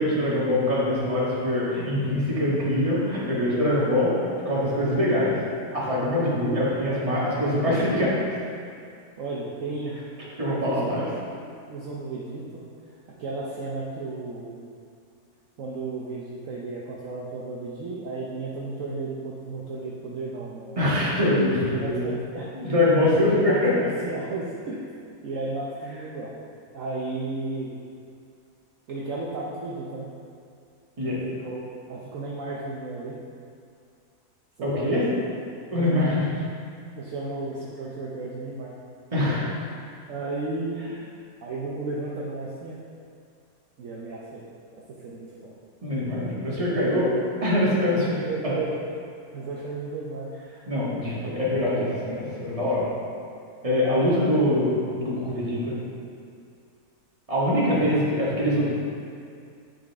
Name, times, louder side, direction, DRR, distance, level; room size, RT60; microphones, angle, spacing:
voice 1, 0.0-5.3 5.7-8.4 10.4-11.0 20.8-22.0 22.5-23.7 31.0-31.2 34.6-35.1 35.7-36.2 39.1-39.5 45.8-47.1 47.4-48.2 50.7-52.9 53.6-55.8 57.3-58.7, left 1 dB, 20° right, -8 dB, 1.7 m, -23 dB
voice 2, 9.2-10.0 10.5-11.0 11.3-12.6 13.2-14.6 15.6-20.8 21.7-22.5 22.9-24.8 25.2-26.3 26.7-27.7 28.9-30.1 31.0-33.2 34.7-35.2 35.7-36.2 36.9-38.7 40.1-40.9 41.4-42.8 43.8-44.4 45.0-45.5 48.2-48.8 49.3-50.3 57.8-57.9, right 3 dB, 60° right, -4 dB, 1.1 m, -34 dB
9.2 x 5.2 x 3.5 m, 2.4 s
omnidirectional pair, 1.6 m